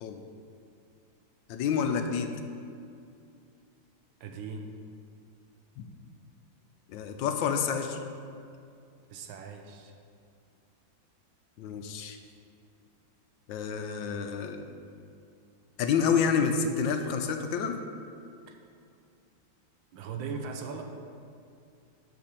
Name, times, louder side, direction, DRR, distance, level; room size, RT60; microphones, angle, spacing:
voice 1, 1.5-2.4 5.8-5.9 6.9-8.0 11.6-12.2 13.5-14.7 15.8-17.8, left 6 dB, 80° left, 6 dB, 1.3 m, -28 dB
voice 2, 4.2-4.7 9.1-9.9 18.5-18.6 19.9-20.8, right 5 dB, 80° right, 4 dB, 1.5 m, -39 dB
8.5 x 4.4 x 6.6 m, 2.4 s
omnidirectional pair, 2.1 m